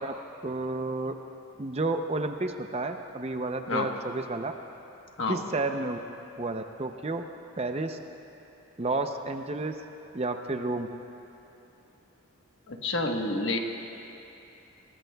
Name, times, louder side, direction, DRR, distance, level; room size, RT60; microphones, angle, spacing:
voice 1, 0.4-1.2 1.6-4.5 5.3-6.0 6.4-7.2 7.6-8.0 8.8-9.7 10.1-10.9, right 2 dB, 30° right, 6 dB, 0.5 m, -31 dB
voice 2, 12.7-13.6, left 2 dB, 55° left, 2 dB, 1.2 m, -28 dB
26.5 x 19.5 x 2.3 m, 2.9 s
head